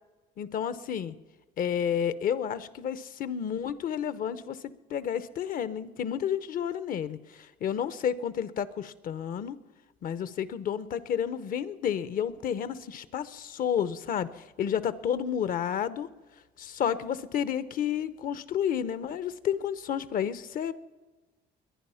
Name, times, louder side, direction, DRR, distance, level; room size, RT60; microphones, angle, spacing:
voice 1, 0.4-1.1 1.6-9.6 10.0-16.1 16.6-20.7, left 8 dB, 55° left, 15 dB, 0.9 m, -31 dB
22.5 x 9.7 x 5.7 m, 1.2 s
cardioid pair, 110°, 17 cm